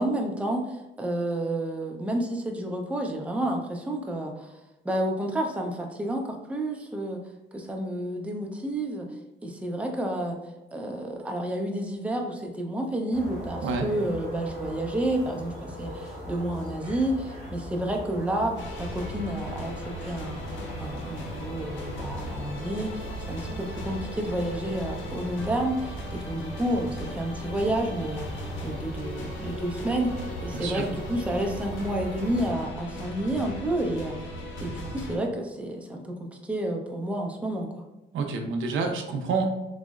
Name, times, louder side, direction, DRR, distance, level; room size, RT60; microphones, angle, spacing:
voice 1, 0.0-4.6 4.8-7.2 7.5-9.1 9.4-10.4 10.7-37.8, right 1 dB, 5° right, 1 dB, 0.5 m, -30 dB
sound 1, 13.1-32.5, equal, 35° left, 1.2 m, -40 dB
sound 2, 18.6-35.2, equal, 70° left, 0.6 m, -38 dB
voice 2, 30.5-30.8 38.1-39.4, right 4 dB, 80° right, 4 dB, 0.5 m, -28 dB
3.6 x 2.0 x 2.3 m, 1.0 s
cardioid pair, 90°, 20 cm